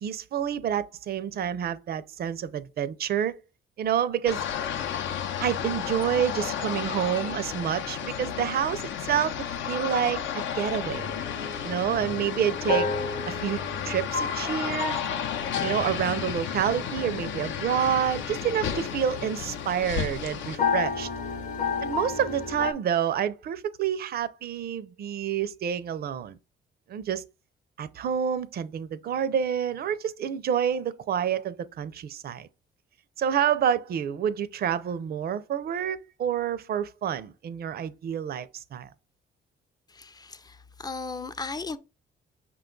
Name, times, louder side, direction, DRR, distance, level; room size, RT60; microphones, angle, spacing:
voice 1, 0.0-3.4 3.8-4.4 5.4-11.1 11.6-12.9 13.3-15.0 15.6-21.1 21.8-26.4 26.9-27.2 27.8-32.5 33.2-38.9, right 9 dB, 50° right, 0.5 m, -28 dB
sound 1, 4.3-20.6, left 8 dB, 75° left, 0.6 m, -33 dB
sound 2, 10.9-22.7, left 5 dB, 40° left, 0.8 m, -33 dB
voice 2, 39.9-41.8, left 4 dB, 20° left, 0.4 m, -36 dB
5.7 x 2.3 x 3.7 m
cardioid pair, 90°, 20 cm